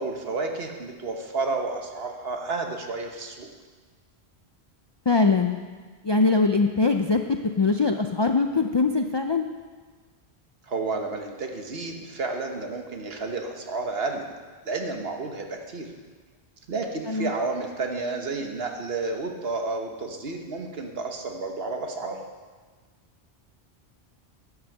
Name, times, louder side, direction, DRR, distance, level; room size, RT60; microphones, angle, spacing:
voice 1, 0.0-3.5 10.7-14.2 14.6-15.9 16.7-22.2, right 3 dB, 65° right, 3 dB, 1.4 m, -31 dB
voice 2, 5.1-5.6 6.0-9.5 17.1-17.3, left 4 dB, 45° left, 5 dB, 0.3 m, -22 dB
11.0 x 6.3 x 7.2 m, 1.4 s
omnidirectional pair, 1.1 m